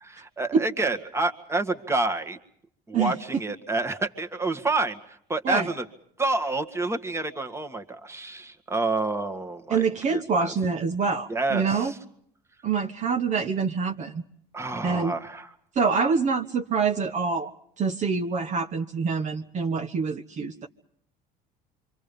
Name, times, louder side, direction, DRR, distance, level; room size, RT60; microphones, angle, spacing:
voice 1, 0.0-2.4 2.9-5.8 6.2-10.5 11.3-12.0 14.5-15.5, right 2 dB, 15° right, 6 dB, 1.9 m, -29 dB
voice 2, 9.7-11.9 12.6-14.2 14.8-15.2 15.7-17.5 17.8-20.7, right 5 dB, 40° right, 4 dB, 1.3 m, -26 dB
26.5 x 25.5 x 5.4 m, 0.68 s
supercardioid pair, 110°, 19 cm